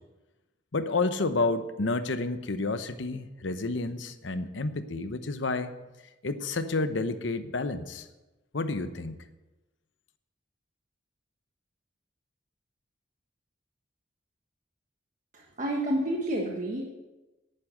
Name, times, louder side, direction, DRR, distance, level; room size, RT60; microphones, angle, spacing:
voice 1, 0.7-5.7 6.2-8.1 8.5-9.2, left 3 dB, 85° left, 11 dB, 0.9 m, -30 dB
voice 2, 15.3-16.9, right 1 dB, 45° right, -1 dB, 1.4 m, -29 dB
11.0 x 9.6 x 6.6 m, 1.1 s
head